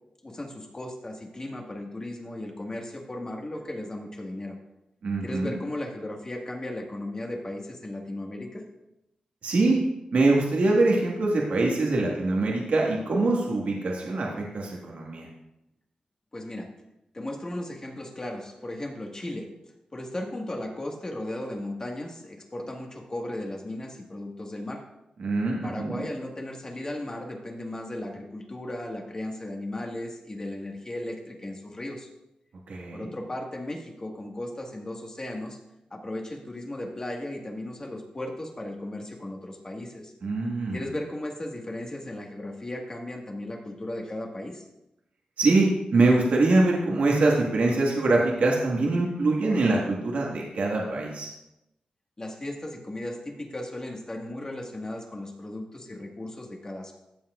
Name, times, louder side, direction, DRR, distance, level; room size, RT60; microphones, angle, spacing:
voice 1, 0.2-4.5 5.2-8.6 16.3-16.7 17.1-19.5 19.9-24.8 25.6-32.1 32.9-35.6 35.9-40.1 40.7-44.7 52.2-56.9, left 1 dB, 30° left, 1 dB, 1.7 m, -36 dB
voice 2, 5.0-5.5 9.4-9.8 10.1-15.3 25.2-26.0 32.7-33.1 40.2-40.8 45.4-51.3, right 2 dB, 70° right, -2 dB, 1.7 m, -24 dB
14.0 x 7.4 x 2.5 m, 0.88 s
cardioid pair, 85°, 2 cm